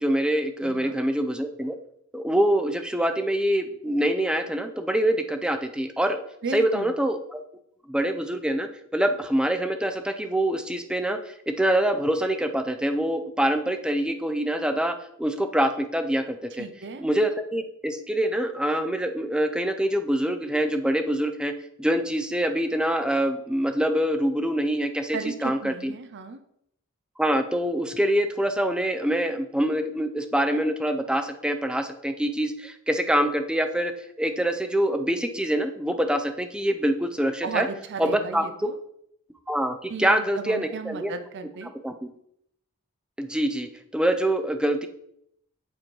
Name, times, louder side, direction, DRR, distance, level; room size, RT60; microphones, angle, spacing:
voice 1, 0.0-1.8 2.1-6.2 6.5-7.4 7.9-16.7 17.0-21.5 21.8-25.9 27.2-33.9 34.2-37.7 38.0-38.4 39.5-41.1 41.8-42.1 43.2-44.9, right 1 dB, 5° right, 8 dB, 0.5 m, -25 dB
voice 2, 0.6-1.0 6.4-6.9 16.6-17.0 25.1-26.4 37.4-38.8 39.9-41.7, right 4 dB, 55° right, 8 dB, 0.6 m, -34 dB
7.6 x 4.3 x 4.6 m, 0.73 s
head